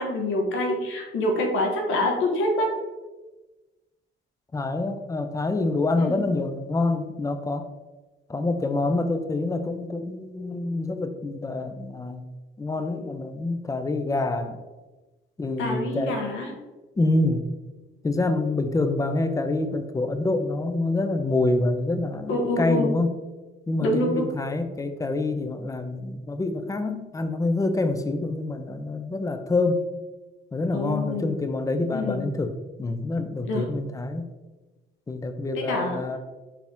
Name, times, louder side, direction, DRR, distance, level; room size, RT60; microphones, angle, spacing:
voice 1, 0.0-2.7 6.0-6.2 15.6-16.5 22.3-22.9 23.8-24.3 30.7-31.3 31.9-32.2 33.5-33.6 35.5-36.2, left 1 dB, 85° left, 2 dB, 0.9 m, -26 dB
voice 2, 4.5-7.6 8.3-12.2 12.6-14.6 15.4-16.2 17.0-17.4 18.0-23.1 23.7-29.8 30.5-32.5 32.8-34.3 35.1-36.2, left 2 dB, 15° left, 8 dB, 0.4 m, -26 dB
4.2 x 2.7 x 3.5 m, 1.2 s
cardioid pair, 90°, 20 cm